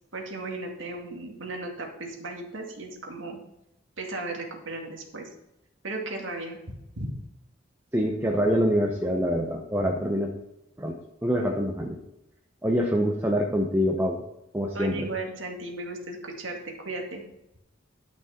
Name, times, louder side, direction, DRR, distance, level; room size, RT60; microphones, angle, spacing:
voice 1, 0.1-3.4 4.0-5.3 5.8-6.6 7.0-7.1 14.7-16.6 16.8-17.2, right 2 dB, 80° right, 1 dB, 2.2 m, -35 dB
voice 2, 7.9-10.3 10.8-11.0 11.2-12.0 12.6-14.2 14.5-15.1, equal, 10° right, 1 dB, 0.9 m, -25 dB
11.5 x 6.1 x 4.5 m, 0.87 s
head